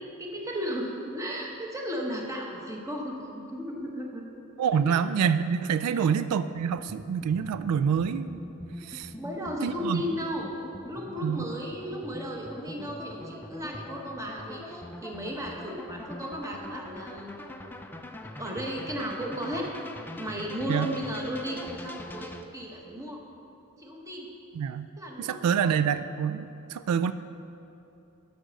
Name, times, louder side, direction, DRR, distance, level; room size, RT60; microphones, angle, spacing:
voice 1, 0.2-4.2 4.8-4.9 5.9-6.1 9.2-10.5 10.9-17.7 18.4-19.7 20.1-23.2 23.8-24.3 25.0-25.5, equal, 15° right, 0 dB, 1.1 m, -35 dB
voice 2, 4.6-8.4 8.8-9.1 9.6-10.0 11.2-11.5 20.7-20.9 24.6-24.9 25.2-27.1, right 7 dB, 90° right, 14 dB, 0.3 m, -26 dB
sound 1, 6.7-22.4, left 1 dB, 10° left, 0.4 m, -43 dB
11.0 x 5.1 x 6.3 m, 2.9 s
head